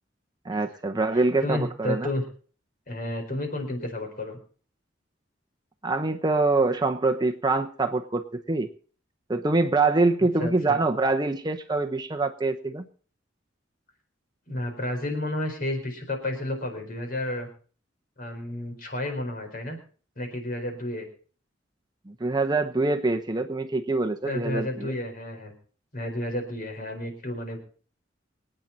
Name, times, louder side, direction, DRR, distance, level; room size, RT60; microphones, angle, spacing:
voice 1, 0.4-2.1 5.8-8.7 9.3-12.8 22.1-24.9, right 3 dB, 20° right, 6 dB, 0.9 m, -25 dB
voice 2, 1.4-2.2 2.9-4.4 10.4-10.8 14.5-17.5 18.2-19.8 20.2-21.1 24.3-25.5 25.9-27.6, left 1 dB, 50° left, 5 dB, 4.5 m, -31 dB
26.0 x 9.1 x 4.1 m, 0.42 s
head